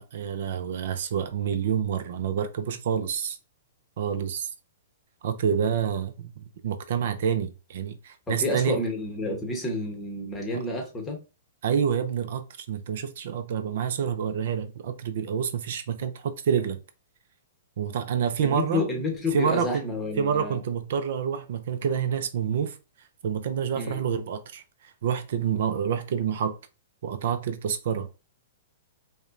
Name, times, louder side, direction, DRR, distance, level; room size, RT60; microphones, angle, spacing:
voice 1, 0.0-3.4 4.0-4.5 5.2-8.8 10.5-10.6 11.6-16.8 17.8-18.9 19.3-19.9 20.2-22.8 23.2-26.6 27.0-28.3, right 7 dB, 65° right, 0.4 m, -28 dB
voice 2, 8.3-11.2 18.4-20.6 23.7-24.0, left 2 dB, 10° left, 1.0 m, -30 dB
4.9 x 2.2 x 2.5 m
hypercardioid pair, 145°, 0 cm